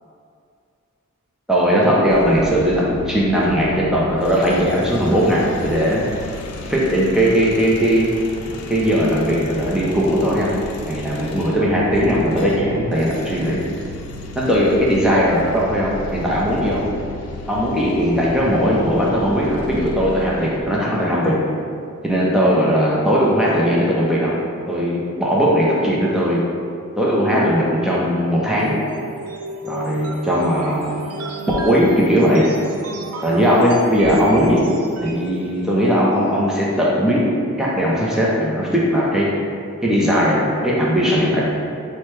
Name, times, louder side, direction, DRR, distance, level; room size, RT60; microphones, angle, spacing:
voice 1, 1.5-6.0 6.7-8.1 8.7-10.5 10.8-13.6 14.4-16.8 17.5-21.4 22.0-24.4 24.7-26.5 27.0-28.8 29.6-30.9 31.5-32.5 33.2-34.6 35.0-37.2 37.6-39.3 39.8-41.5, equal, 5° right, -6 dB, 0.5 m, -18 dB
sound 1, 2.1-20.6, left 2 dB, 85° left, 0.4 m, -34 dB
sound 2, 28.2-35.3, right 2 dB, 75° right, 0.4 m, -34 dB
5.7 x 2.2 x 3.2 m, 2.4 s
head